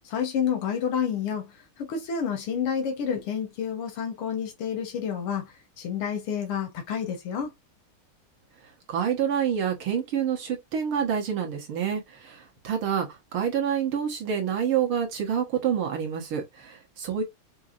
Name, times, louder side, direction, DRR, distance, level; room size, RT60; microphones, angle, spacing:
voice 1, 0.1-1.5 1.8-5.5 5.8-7.5, left 7 dB, 90° left, 2.0 m, -29 dB
voice 2, 8.9-17.2, right 8 dB, 75° right, 2.2 m, -27 dB
6.1 x 2.9 x 2.5 m
omnidirectional pair, 2.4 m